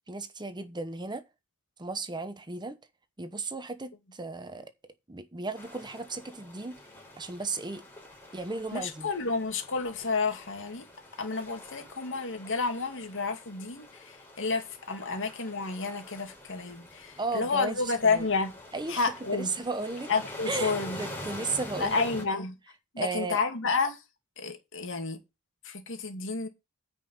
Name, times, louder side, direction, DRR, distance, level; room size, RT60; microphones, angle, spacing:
voice 1, 0.1-1.2 1.8-2.8 3.2-4.7 5.1-6.8 7.2-7.8 8.3-9.1 17.2-18.3 18.7-20.1 20.5-22.0 23.0-23.4, right 3 dB, 20° right, 0.9 m, -35 dB
sound 1, 5.5-22.2, left 1 dB, 10° left, 5.3 m, -45 dB
voice 2, 8.7-10.8 11.2-18.5 18.9-19.5 20.1-21.0 21.8-22.6 22.9-24.0 24.4-25.2 25.6-26.5, left 4 dB, 60° left, 2.5 m, -30 dB
9.7 x 5.3 x 7.9 m
head